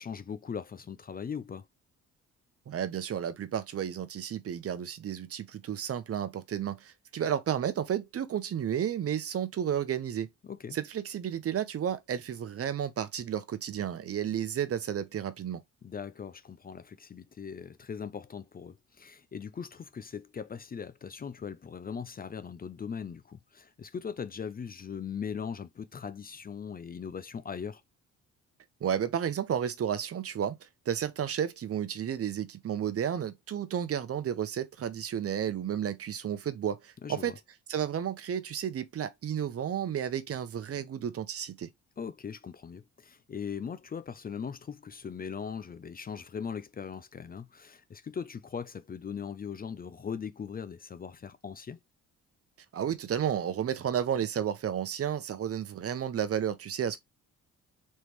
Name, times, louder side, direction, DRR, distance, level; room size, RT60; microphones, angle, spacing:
voice 1, 0.0-1.7 10.4-10.8 15.8-27.8 37.0-37.4 42.0-51.8, left 6 dB, 30° left, 0.5 m, -40 dB
voice 2, 2.7-10.3 10.7-15.6 28.8-30.6 30.9-37.4 37.7-41.7 52.7-57.0, right 9 dB, 50° right, 0.8 m, -32 dB
4.3 x 3.3 x 3.1 m
cardioid pair, 90°, 30 cm